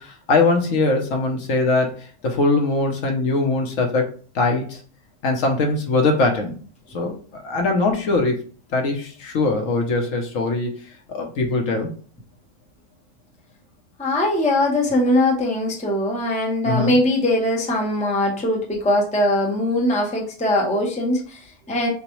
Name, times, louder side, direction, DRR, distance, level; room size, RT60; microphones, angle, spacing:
voice 1, 0.0-4.8 5.2-6.6 6.9-8.4 8.7-11.9 16.6-16.9, left 3 dB, 65° left, 3 dB, 1.2 m, -22 dB
voice 2, 14.0-21.9, left 1 dB, 5° left, -1 dB, 0.6 m, -21 dB
6.8 x 2.3 x 3.0 m, 0.43 s
omnidirectional pair, 1.5 m